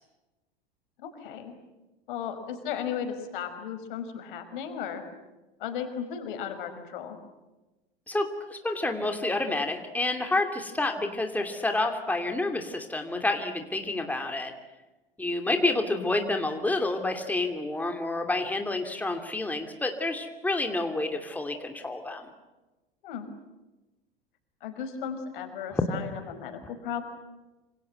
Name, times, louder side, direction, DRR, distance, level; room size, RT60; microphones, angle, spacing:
voice 1, 1.0-1.5 2.1-5.0 5.6-7.2 23.0-23.3 24.6-27.0, left 8 dB, 60° left, 8 dB, 5.1 m, -35 dB
voice 2, 8.1-14.5 15.2-22.3 25.7-25.8, left 2 dB, 5° left, 4 dB, 2.8 m, -29 dB
27.0 x 27.0 x 7.9 m, 1.1 s
figure-of-eight pair, 90°, 29 cm